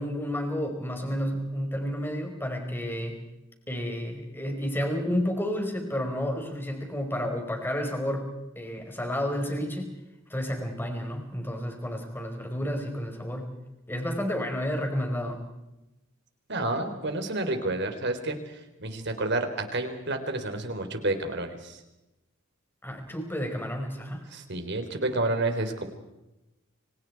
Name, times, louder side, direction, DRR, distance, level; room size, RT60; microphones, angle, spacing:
voice 1, 0.0-3.2 3.7-9.9 10.3-13.5 13.9-15.5 22.8-24.3, equal, 10° left, 4 dB, 4.6 m, -31 dB
voice 2, 16.5-18.4 18.8-21.8 24.3-25.9, right 2 dB, 55° right, 7 dB, 3.7 m, -29 dB
30.0 x 26.0 x 4.7 m, 0.97 s
head